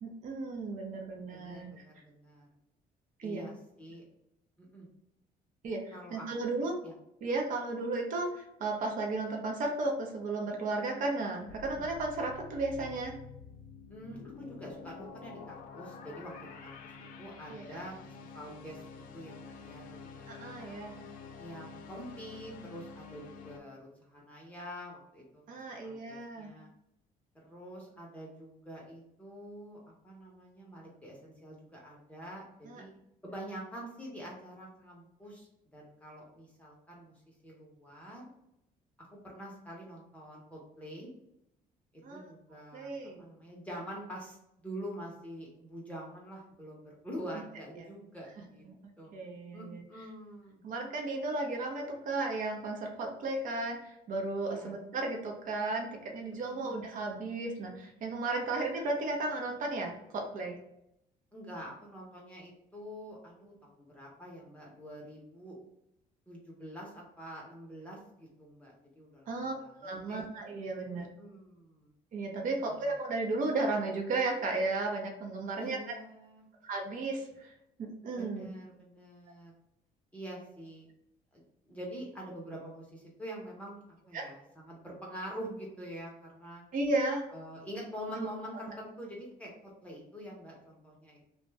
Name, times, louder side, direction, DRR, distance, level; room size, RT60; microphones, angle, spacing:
voice 1, 0.0-1.8 3.2-3.4 5.6-6.7 7.2-13.1 17.5-17.8 20.3-21.0 25.5-26.5 32.7-32.8 42.0-42.3 42.7-43.2 47.8-47.9 49.1-49.8 50.6-60.5 69.3-69.5 69.8-71.1 72.1-75.8 76.6-77.5 77.8-78.5 84.1-84.2 86.7-87.3 88.2-88.3, right 2 dB, 50° right, 1 dB, 0.6 m, -34 dB
voice 2, 1.3-2.5 3.2-4.0 4.7-4.9 5.9-6.3 6.8-6.9 13.9-16.8 17.2-18.8 19.1-20.8 21.4-25.4 25.8-26.7 27.3-32.9 33.2-38.3 39.0-41.1 41.9-42.9 43.2-44.4 44.6-48.6 49.0-49.1 49.5-50.6 54.4-54.8 56.3-56.8 61.3-65.6 66.3-70.2 70.9-71.9 72.7-72.9 75.6-76.5 78.1-79.5 80.1-80.9 81.3-81.4 81.7-86.6 87.3-91.2, equal, 10° left, -3 dB, 0.8 m, -46 dB
sound 1, 11.5-23.6, left 5 dB, 55° left, 0.4 m, -48 dB
2.6 x 2.1 x 3.3 m, 0.82 s
cardioid pair, 110°, 17 cm